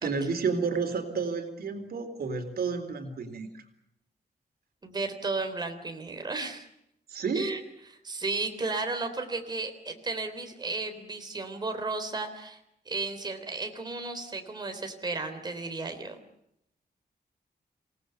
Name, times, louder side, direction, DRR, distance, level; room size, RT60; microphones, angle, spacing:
voice 1, 0.0-3.6 7.1-7.5, right 5 dB, 75° right, 7 dB, 3.9 m, -31 dB
voice 2, 4.8-6.7 7.3-7.6 7.9-12.6 12.9-16.2, right 3 dB, 25° right, 5 dB, 3.6 m, -34 dB
28.0 x 18.5 x 8.1 m, 0.77 s
wide cardioid pair, 180°, 16 cm